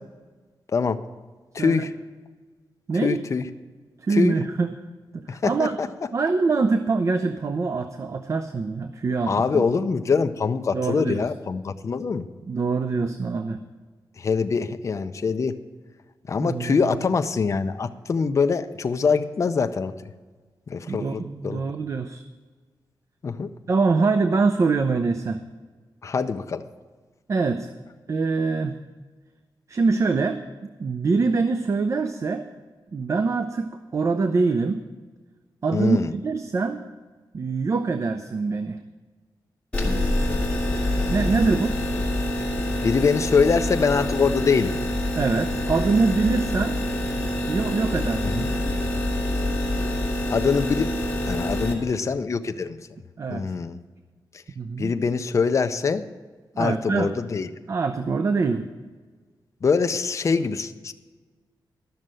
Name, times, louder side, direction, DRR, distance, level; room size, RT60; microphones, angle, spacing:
voice 1, 1.5-1.9 3.0-3.5 4.1-4.3 5.3-5.9 9.3-12.3 14.2-15.6 16.3-19.9 20.7-21.7 23.2-23.5 26.0-26.6 35.7-36.1 42.8-44.8 48.2-48.5 50.3-50.9 51.3-52.8 53.3-53.8 54.8-56.0 56.6-57.5 59.6-60.9, left 5 dB, 40° left, 8 dB, 0.5 m, -24 dB
voice 2, 2.9-3.2 4.0-4.7 5.1-5.8 6.1-9.6 10.7-11.2 12.5-13.6 16.4-16.9 20.9-22.2 23.7-25.4 27.3-27.7 28.1-28.8 29.7-32.4 32.9-34.8 35.6-36.8 37.3-38.8 41.1-41.7 45.1-46.8 47.5-48.6 53.2-53.5 54.6-54.9 56.6-57.1 57.7-58.7, right 4 dB, 40° right, 9 dB, 0.5 m, -24 dB
sound 1, 39.7-51.7, left 1 dB, 15° left, 2.0 m, -26 dB
12.5 x 6.5 x 7.5 m, 1.4 s
wide cardioid pair, 165°, 8 cm